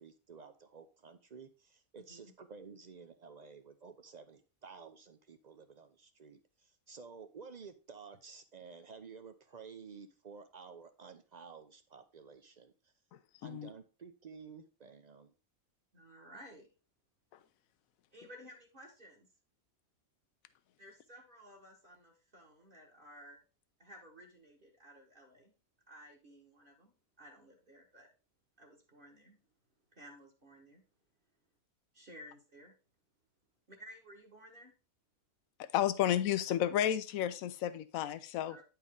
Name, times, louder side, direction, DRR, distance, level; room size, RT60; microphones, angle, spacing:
voice 1, 0.0-12.9 13.4-15.3, right 5 dB, 55° right, 0.4 m, -52 dB
voice 2, 1.9-2.3 15.9-16.7 18.1-19.3 20.8-23.4 23.8-25.5 25.9-28.1 28.6-29.4 29.9-30.8 31.9-32.7 33.7-34.7 38.5-38.6, equal, 40° right, 1.5 m, -55 dB
voice 3, 35.6-38.6, left 11 dB, 75° left, 1.0 m, -32 dB
9.6 x 4.5 x 3.7 m
omnidirectional pair, 1.5 m